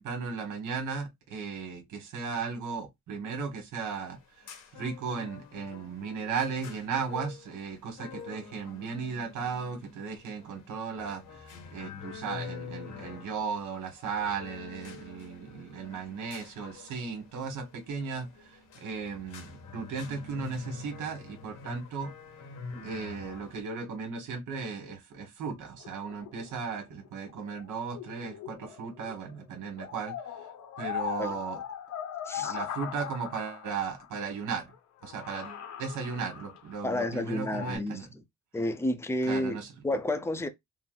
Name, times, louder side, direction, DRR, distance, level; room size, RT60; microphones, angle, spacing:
voice 1, 0.0-4.2 4.7-22.1 22.8-30.2 30.8-31.6 32.4-34.7 35.0-38.1 39.3-39.7, right 5 dB, 80° right, 1.5 m, -36 dB
sound 1, 3.8-23.6, left 5 dB, 85° left, 1.5 m, -46 dB
sound 2, 25.8-29.4 29.7-34.2 34.7-34.8 35.0-37.8, left 9 dB, 65° left, 1.0 m, -40 dB
voice 2, 32.3-32.6 36.8-38.1 38.5-39.6 39.8-40.5, left 1 dB, 10° left, 0.6 m, -30 dB
3.9 x 2.0 x 3.9 m
cardioid pair, 90°, 30 cm